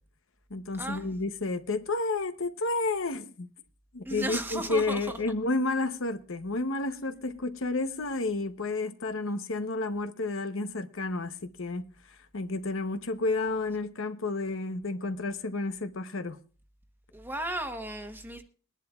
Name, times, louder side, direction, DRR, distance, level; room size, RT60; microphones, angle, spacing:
voice 1, 0.5-3.5 3.9-11.8 12.1-16.4, left 3 dB, 80° left, 0.9 m, -31 dB
voice 2, 4.0-5.2 17.1-18.4, right 1 dB, 10° right, 1.1 m, -35 dB
21.5 x 11.0 x 2.4 m
head